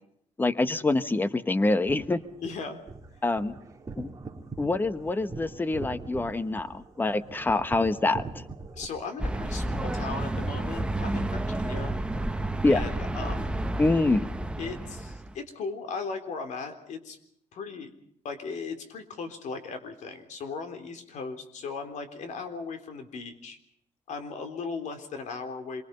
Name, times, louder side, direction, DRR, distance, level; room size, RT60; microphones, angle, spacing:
voice 1, 0.4-2.2 3.2-3.5 4.0-4.1 4.6-8.4 12.6-12.8 13.8-14.3, left 2 dB, 15° left, 13 dB, 1.1 m, -25 dB
sound 1, 1.6-8.9, right 3 dB, 25° right, 2.7 m, -42 dB
voice 2, 2.4-2.8 8.7-12.0 12.7-13.5 14.6-17.2 17.5-17.9 18.2-23.6 24.1-25.8, left 4 dB, 65° left, 7 dB, 3.7 m, -37 dB
sound 2, 9.2-15.3, right 1 dB, 10° right, 1.0 m, -31 dB
27.0 x 23.5 x 5.4 m, 0.70 s
cardioid pair, 135°, 13 cm